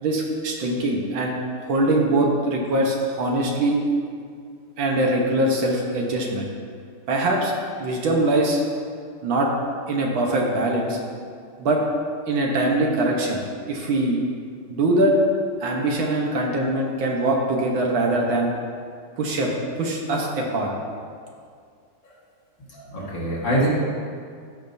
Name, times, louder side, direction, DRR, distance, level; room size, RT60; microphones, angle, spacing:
voice 1, 0.0-1.3 1.6-3.8 4.8-6.5 7.1-7.5 7.8-8.6 9.2-9.5 9.9-11.0 11.6-11.8 12.3-13.4 13.7-14.2 14.7-15.1 15.6-18.5 19.2-19.5 19.8-20.7, right 2 dB, 70° right, -1 dB, 1.8 m, -22 dB
voice 2, 22.7-23.7, right 1 dB, 60° left, -8 dB, 2.8 m, -24 dB
15.0 x 5.2 x 2.6 m, 2.2 s
omnidirectional pair, 2.3 m